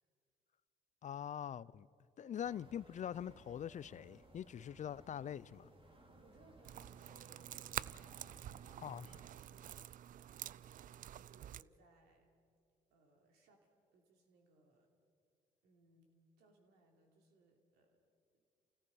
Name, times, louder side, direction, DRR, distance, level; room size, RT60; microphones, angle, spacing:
voice 1, 1.0-1.9 2.2-5.7 8.8-9.1, left 9 dB, 45° left, 0.5 m, -43 dB
sound 1, 2.4-9.3, right 2 dB, 30° right, 3.1 m, -62 dB
voice 2, 6.1-9.0 9.3-12.3 12.9-14.9 15.6-18.0 18.3-18.4, right 2 dB, 75° right, 3.3 m, -69 dB
sound 2, 6.6-11.6, right 11 dB, 55° right, 0.4 m, -48 dB
28.5 x 17.0 x 5.6 m
supercardioid pair, 60°, 17 cm